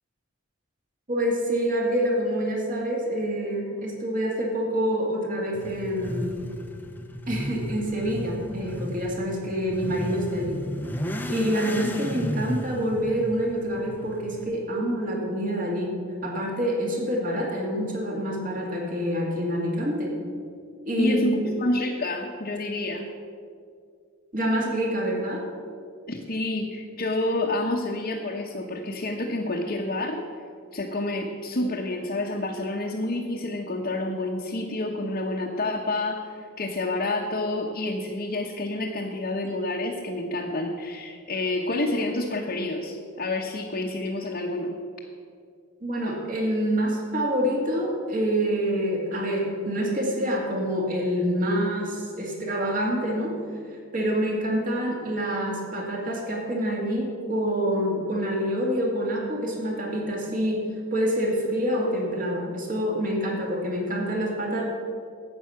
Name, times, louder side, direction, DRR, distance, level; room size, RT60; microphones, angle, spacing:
voice 1, 1.1-6.4 7.3-10.6 11.3-15.9 16.2-20.2 20.8-21.3 24.3-25.4 45.8-53.3 53.7-64.7, equal, 40° right, -1 dB, 2.3 m, -27 dB
Motorcycle / Accelerating revving vroom, 5.5-14.4, equal, 10° left, 0.7 m, -34 dB
voice 2, 21.0-23.1 26.1-44.8, left 2 dB, 45° left, -1 dB, 1.0 m, -29 dB
12.0 x 8.5 x 5.8 m, 2.2 s
head